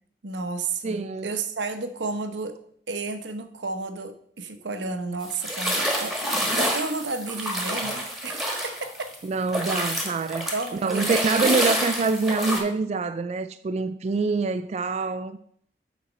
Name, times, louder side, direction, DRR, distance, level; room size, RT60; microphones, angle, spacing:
voice 1, 0.2-2.6 2.9-9.1 10.5-11.2, right 3 dB, 85° right, 1.0 m, -32 dB
voice 2, 0.8-1.3 9.2-15.4, right 4 dB, 40° right, 0.3 m, -26 dB
sound 1, 5.2-9.2 9.5-12.6, equal, ahead, 1.5 m, -28 dB
8.2 x 4.3 x 6.2 m
head